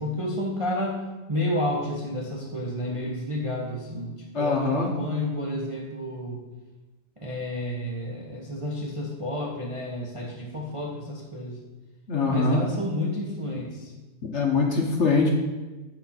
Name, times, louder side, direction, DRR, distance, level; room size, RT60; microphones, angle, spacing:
voice 1, 0.0-6.4 7.2-11.6 12.2-13.9, left 1 dB, 25° right, -2 dB, 0.7 m, -30 dB
voice 2, 4.3-4.9 12.1-12.6 14.3-15.3, left 4 dB, 50° left, 1 dB, 1.0 m, -23 dB
8.4 x 4.4 x 5.7 m, 1.2 s
omnidirectional pair, 1.8 m